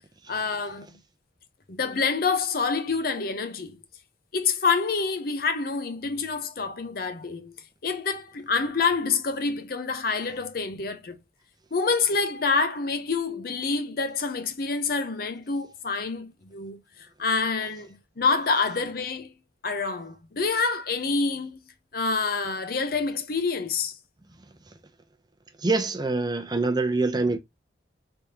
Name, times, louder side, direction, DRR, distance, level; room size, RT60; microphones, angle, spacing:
voice 1, 0.3-0.9 1.7-3.8 4.3-7.5 7.8-11.2 11.7-16.8 17.2-19.3 19.6-21.6 21.9-23.9, left 4 dB, 55° left, 0.7 m, -27 dB
voice 2, 25.6-27.4, right 3 dB, 25° right, 0.7 m, -24 dB
5.0 x 3.5 x 2.9 m
head